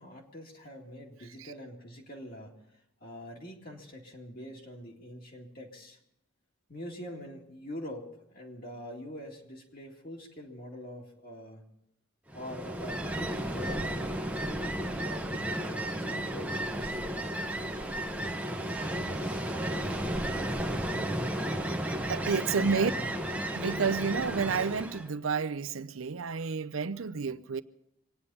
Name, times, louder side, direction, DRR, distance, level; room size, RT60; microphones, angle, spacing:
voice 1, 0.0-2.5 3.0-6.0 6.7-11.6 12.3-14.5 15.0-17.0 18.8-21.3 22.3-23.1, equal, 45° left, 2.3 m, -44 dB
Ocean, 12.3-25.1, right 1 dB, 5° right, 1.1 m, -33 dB
voice 2, 22.1-22.9 23.5-27.6, right 5 dB, 80° right, 0.6 m, -30 dB
25.5 x 9.8 x 5.5 m
head